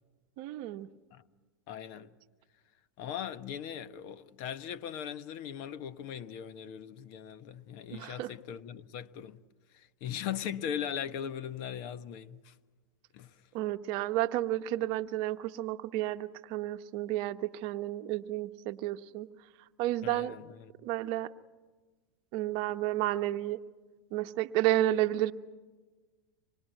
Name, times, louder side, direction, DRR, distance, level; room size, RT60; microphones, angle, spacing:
voice 1, 0.4-0.9 7.9-8.3 13.5-19.3 19.8-20.4 20.8-21.3 22.3-23.6 24.1-25.3, right 14 dB, 50° right, 0.9 m, -31 dB
voice 2, 1.7-2.1 3.0-9.4 9.7-12.5 13.1-13.4 20.0-20.9, left 9 dB, 50° left, 1.0 m, -39 dB
26.0 x 20.0 x 9.1 m
hypercardioid pair, 110°, 11 cm